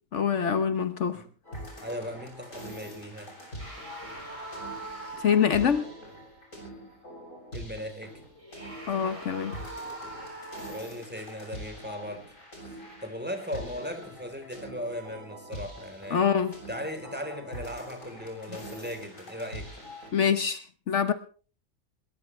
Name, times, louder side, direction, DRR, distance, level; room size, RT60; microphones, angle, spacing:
voice 1, 0.1-1.2 5.2-5.9 8.9-9.6 16.1-16.5 20.1-21.1, left 7 dB, 65° left, 1.3 m, -25 dB
sound 1, 1.4-20.1, equal, 80° left, 7.9 m, -44 dB
voice 2, 1.8-3.3 7.5-8.2 10.7-12.3 12.6-16.3 16.7-19.8, equal, 5° right, 3.7 m, -38 dB
sound 2, 3.6-5.7 8.3-11.1, right 2 dB, 25° right, 5.2 m, -42 dB
21.5 x 20.0 x 3.3 m
omnidirectional pair, 1.3 m